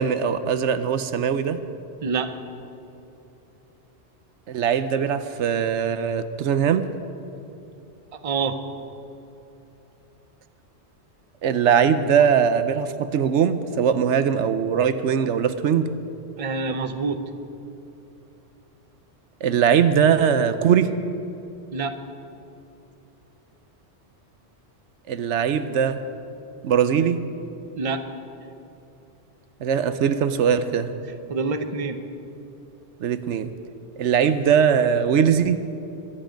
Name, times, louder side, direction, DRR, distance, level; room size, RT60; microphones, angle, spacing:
voice 1, 0.0-1.6 4.5-6.9 11.4-15.9 19.4-20.9 25.1-26.0 26.6-27.2 29.6-30.9 33.0-33.5 34.0-35.6, right 7 dB, 85° right, 11 dB, 1.0 m, -21 dB
voice 2, 8.2-8.6 16.4-17.2 21.7-21.9 27.8-28.0 31.3-32.0, right 4 dB, 35° right, 8 dB, 0.8 m, -26 dB
23.5 x 9.7 x 5.2 m, 2.9 s
omnidirectional pair, 1.2 m